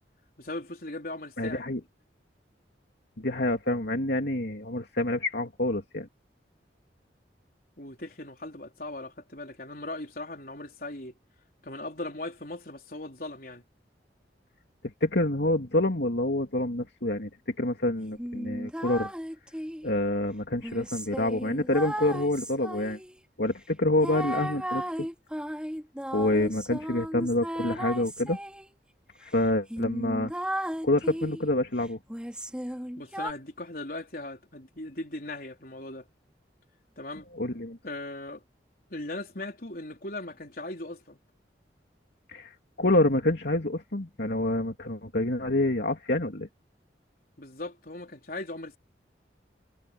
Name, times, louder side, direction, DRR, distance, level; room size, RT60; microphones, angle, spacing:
voice 1, 0.4-1.6 7.8-11.1 11.6-13.6 33.0-36.1 37.0-37.3 37.8-38.4 38.9-41.2 47.4-48.8, left 2 dB, 55° left, 4.3 m, -38 dB
voice 2, 1.4-1.8 3.2-6.1 15.0-17.3 17.6-19.1 19.8-23.0 23.4-25.1 26.1-28.4 29.2-30.3 30.6-32.0 37.3-37.8 42.3-46.5, left 1 dB, 70° left, 2.7 m, -27 dB
sound 1, 18.2-19.9 20.6-23.2 24.0-28.7 29.3-29.4 29.7-31.5 32.1-33.3, equal, 5° right, 4.1 m, -35 dB
head